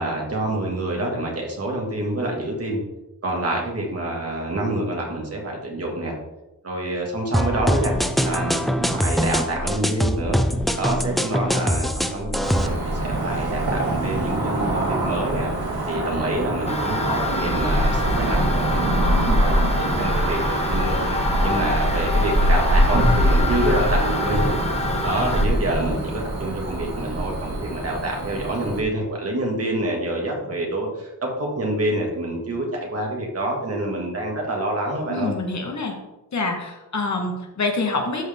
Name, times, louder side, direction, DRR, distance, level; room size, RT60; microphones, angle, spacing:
voice 1, 0.0-2.8 3.2-6.2 6.6-7.9 8.2-10.4 10.8-15.5 15.9-21.0 21.4-24.5 25.0-35.3, right 1 dB, 40° right, -1 dB, 2.1 m, -27 dB
sound 1, 7.3-12.7, equal, ahead, 0.5 m, -23 dB
Cricket / Motor vehicle (road), 12.4-28.8, right 1 dB, 90° right, 2.4 m, -23 dB
sound 2, 16.7-25.5, left 2 dB, 20° left, 0.9 m, -28 dB
voice 2, 35.1-35.9 36.3-38.3, left 3 dB, 50° left, 2 dB, 1.5 m, -26 dB
13.0 x 4.8 x 3.7 m, 1.0 s
wide cardioid pair, 160°, 35 cm